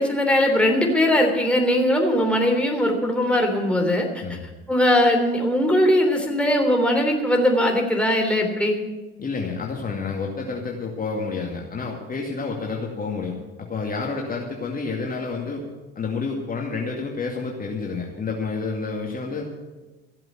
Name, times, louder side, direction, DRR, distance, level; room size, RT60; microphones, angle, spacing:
voice 1, 0.0-4.4 4.7-8.8, left 1 dB, 5° left, 1 dB, 3.3 m, -20 dB
voice 2, 9.2-15.6 16.0-19.4, left 4 dB, 30° left, -1 dB, 2.3 m, -29 dB
15.0 x 7.6 x 9.1 m, 1.2 s
hypercardioid pair, 65°, 30 cm